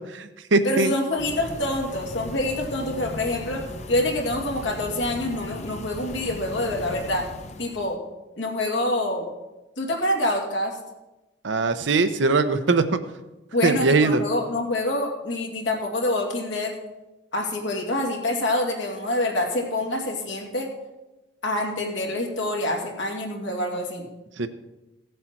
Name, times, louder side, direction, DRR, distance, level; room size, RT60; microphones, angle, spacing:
voice 1, 0.1-0.9 11.4-12.8 13.6-14.2 24.4-24.5, right 3 dB, 85° right, 9 dB, 0.8 m, -21 dB
voice 2, 0.6-3.6 3.9-7.3 7.6-8.0 8.4-9.2 9.8-10.8 13.5-16.7 17.3-20.7 21.4-24.1, left 1 dB, 90° left, 0 dB, 2.4 m, -26 dB
sound 1, 1.2-8.0, left 2 dB, 40° left, 0.7 m, -37 dB
16.0 x 7.9 x 4.5 m, 1.0 s
head